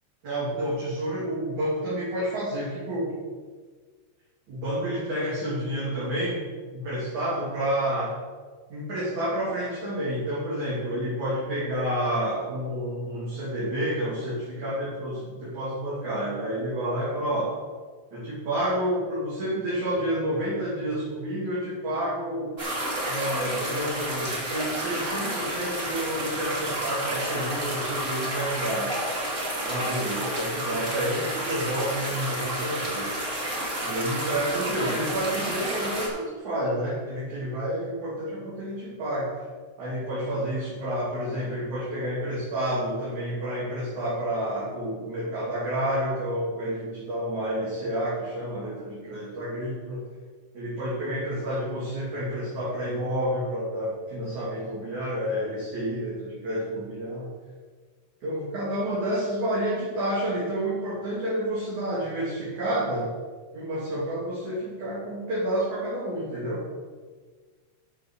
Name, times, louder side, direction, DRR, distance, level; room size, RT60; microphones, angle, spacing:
voice 1, 0.2-3.1 4.5-6.4 6.7-8.1 8.7-17.5 18.1-22.5 23.0-28.9 29.6-33.1 33.8-39.3 39.8-50.0 50.5-57.3 58.2-63.1 63.5-66.6, equal, 45° right, -8 dB, 3.9 m, -29 dB
sound 1, 22.6-36.1, right 1 dB, 25° right, 1.7 m, -30 dB
13.0 x 6.3 x 6.4 m, 1.4 s
omnidirectional pair, 5.5 m